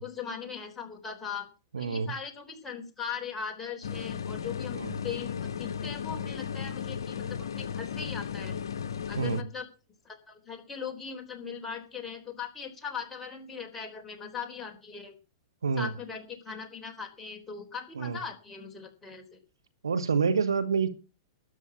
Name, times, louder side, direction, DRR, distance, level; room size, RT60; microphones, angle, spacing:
voice 1, 0.0-1.5 1.8-8.6 9.1-9.7 10.0-15.2 15.8-19.4, left 6 dB, 15° left, 3 dB, 3.8 m, -39 dB
voice 2, 1.7-2.1 4.7-4.9 9.2-9.4 15.6-15.9 18.0-18.2 19.8-20.9, right 5 dB, 90° right, 13 dB, 1.2 m, -27 dB
sound 1, 3.8-9.4, left 7 dB, 80° left, 0.9 m, -35 dB
13.0 x 8.3 x 7.3 m, 0.35 s
hypercardioid pair, 115°, 2 cm